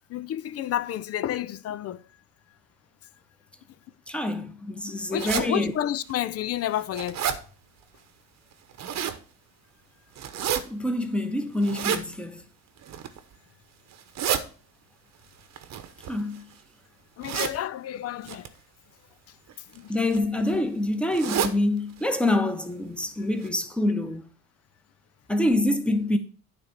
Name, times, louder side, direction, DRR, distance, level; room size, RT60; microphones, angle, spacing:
voice 1, 0.1-2.0 4.9-7.3 17.2-18.5 19.7-19.9, left 11 dB, 40° left, 0.6 m, -30 dB
voice 2, 4.1-5.7 10.6-12.4 16.1-16.5 17.3-17.5 19.9-24.3 25.3-26.2, left 1 dB, 5° left, 1.1 m, -26 dB
sound 1, 5.2-5.5 6.1-6.2 6.6-7.4 8.5-9.2 10.2-10.6 11.6-12.0 12.8-13.2 13.9-14.4 15.5-16.5 17.2-17.6 18.3-18.5 19.5-19.8 20.1-20.2 20.5-20.6 21.1-21.6 22.0-22.1 22.4-22.5 23.0-23.1 23.4-23.5, right 8 dB, 50° right, 1.0 m, -29 dB
9.5 x 3.5 x 6.4 m
supercardioid pair, 85°, 36 cm